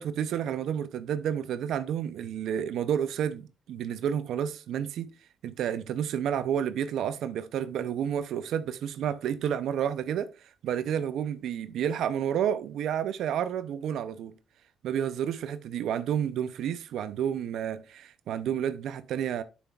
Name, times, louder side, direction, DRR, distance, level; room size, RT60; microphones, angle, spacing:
voice 1, 0.0-5.1 5.4-14.3 14.8-19.4, right 9 dB, 75° right, 0.5 m, -30 dB
9.2 x 7.0 x 2.4 m
cardioid pair, 90°, 0 cm